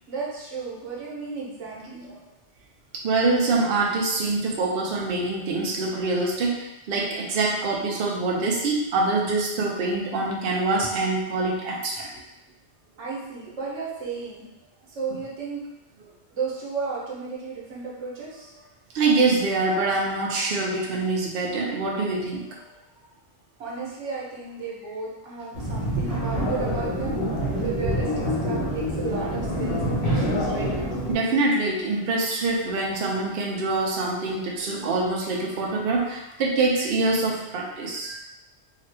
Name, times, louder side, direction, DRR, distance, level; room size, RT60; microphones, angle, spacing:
voice 1, 0.1-2.1 13.0-14.5 14.9-15.6 16.3-18.5 23.6-27.2 27.6-30.7, right 4 dB, 80° right, -5 dB, 1.2 m, -33 dB
voice 2, 3.0-12.1 18.9-22.7 26.0-26.1 31.1-38.2, right 3 dB, 60° right, -1 dB, 0.7 m, -25 dB
sound 1, 25.5-31.2, equal, 60° left, 1.1 m, -26 dB
2.8 x 2.4 x 3.2 m, 0.92 s
omnidirectional pair, 1.2 m